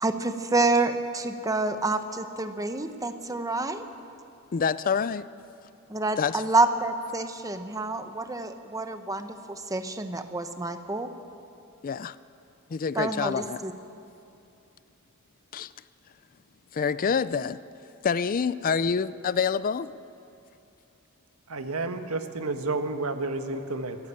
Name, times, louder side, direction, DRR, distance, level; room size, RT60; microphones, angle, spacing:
voice 1, 0.0-3.8 5.9-11.1 12.9-13.7, right 2 dB, 15° right, 8 dB, 0.9 m, -28 dB
voice 2, 4.5-5.3 6.2-6.4 11.8-12.2 12.7-13.6 15.5-15.7 16.7-17.6 18.0-19.9, left 6 dB, 40° left, 16 dB, 0.4 m, -27 dB
voice 3, 21.5-24.0, right 3 dB, 90° right, 7 dB, 1.4 m, -30 dB
20.5 x 14.5 x 8.9 m, 2.6 s
head